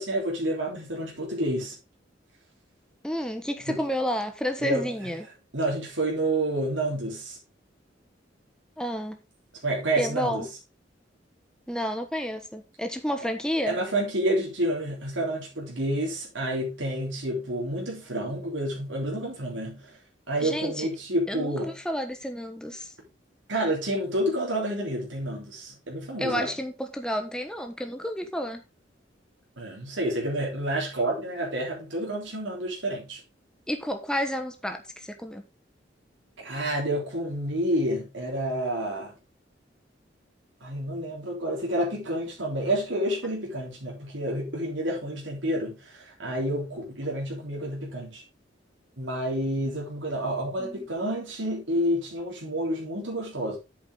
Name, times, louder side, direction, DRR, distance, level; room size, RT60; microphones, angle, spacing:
voice 1, 0.0-1.7 3.7-3.8 4.6-5.1 5.5-7.4 9.6-10.5 13.7-19.9 20.3-21.7 23.5-26.5 29.6-33.2 36.4-39.1 40.6-48.2 49.0-53.6, right 1 dB, 90° right, 3.4 m, -29 dB
voice 2, 3.0-5.3 8.8-9.2 10.0-10.5 11.7-13.8 20.4-20.9 21.3-22.9 26.2-28.6 33.7-35.4 50.6-50.9, equal, 5° left, 1.2 m, -30 dB
8.8 x 7.5 x 3.7 m
head